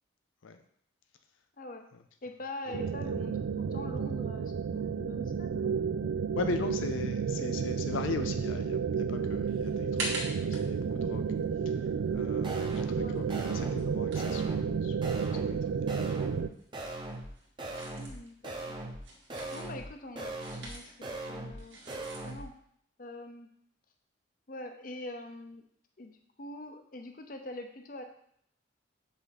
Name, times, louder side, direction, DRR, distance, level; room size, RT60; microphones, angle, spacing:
voice 1, 1.6-1.9 2.2-5.8 12.5-13.2 18.0-18.8 19.5-20.9 21.3-21.8 22.2-22.5 23.0-23.5 24.5-25.7 26.0-26.1 26.4-28.0, left 1 dB, 45° left, 5 dB, 0.7 m, -44 dB
sound 1, 2.7-16.5, right 6 dB, 90° right, 0.4 m, -31 dB
voice 2, 6.3-11.2 11.6-15.9, left 4 dB, 85° left, 8 dB, 0.5 m, -39 dB
sound 2, 9.0-15.4 15.7-22.4, right 2 dB, 70° right, 1.6 m, -45 dB
sound 3, 12.4-13.0 13.3-13.9 14.2-14.7 15.0-15.6 15.9-16.4 16.7-17.3 17.6-18.2 18.4-19.0 19.3-19.9 20.2-20.7 21.0-21.6 21.9-22.4, right 2 dB, 25° right, 1.0 m, -40 dB
6.1 x 5.3 x 4.2 m, 0.67 s
head